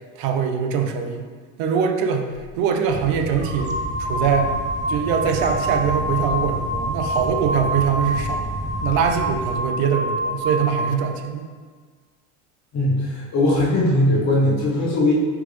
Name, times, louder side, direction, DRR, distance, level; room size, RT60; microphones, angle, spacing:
voice 1, 0.2-1.3 1.6-2.3 2.6-4.5 4.9-8.4 8.8-11.4, right 7 dB, 65° right, 4 dB, 0.7 m, -22 dB
sound 1, 2.3-2.5 3.3-11.0, right 1 dB, 85° right, 1.3 m, -27 dB
sound 2, 2.9-9.6, right 1 dB, 20° right, 0.5 m, -32 dB
voice 2, 12.7-15.1, left 1 dB, 45° left, -4 dB, 1.0 m, -19 dB
4.7 x 3.5 x 3.3 m, 1.5 s
supercardioid pair, 95°, 39 cm